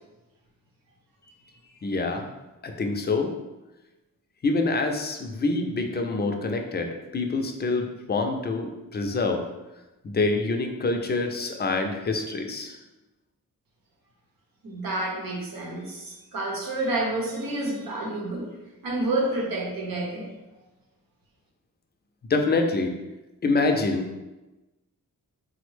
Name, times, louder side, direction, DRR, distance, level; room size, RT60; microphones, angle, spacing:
voice 1, 1.8-2.3 2.6-3.3 4.4-9.4 10.0-12.8 22.3-22.9 23.4-24.1, left 3 dB, 30° left, 4 dB, 0.4 m, -26 dB
voice 2, 14.6-18.5 18.8-20.3, right 2 dB, 90° right, -1 dB, 0.8 m, -29 dB
3.6 x 2.1 x 3.1 m, 1.1 s
wide cardioid pair, 90°, 34 cm